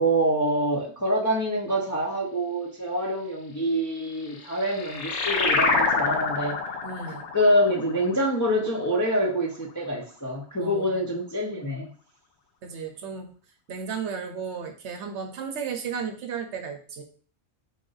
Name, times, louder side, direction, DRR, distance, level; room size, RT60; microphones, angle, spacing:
voice 1, 0.0-6.6 7.1-11.9, equal, 25° left, -3 dB, 0.4 m, -26 dB
sound 1, 4.2-9.2, left 4 dB, 70° left, 1.0 m, -27 dB
voice 2, 6.8-7.3 10.6-11.2 12.6-13.3 13.7-17.0, right 6 dB, 65° right, 5 dB, 0.9 m, -34 dB
3.6 x 2.6 x 3.8 m, 0.42 s
omnidirectional pair, 1.3 m